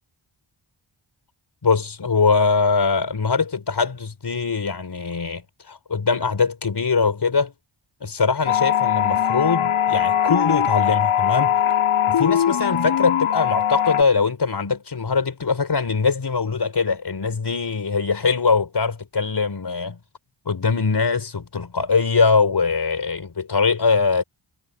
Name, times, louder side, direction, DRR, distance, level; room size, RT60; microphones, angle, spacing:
voice 1, 1.6-7.5 8.0-11.6 12.1-20.0 20.4-24.2, left 4 dB, 50° left, 4.7 m, -22 dB
sound 1, 8.5-14.0, left 9 dB, 85° left, 1.6 m, -20 dB
wide cardioid pair, 80°, 49 cm